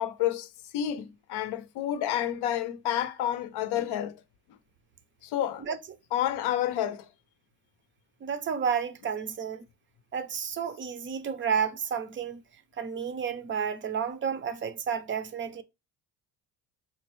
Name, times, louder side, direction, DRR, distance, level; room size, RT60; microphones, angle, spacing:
voice 1, 0.0-4.2 4.5-4.6 5.2-5.7 6.1-7.1, left 11 dB, 70° left, 0.6 m, -30 dB
voice 2, 8.2-9.6 10.1-12.4 12.8-15.6, right 7 dB, 30° right, 0.4 m, -31 dB
3.8 x 2.2 x 3.0 m
cardioid pair, 110°, 41 cm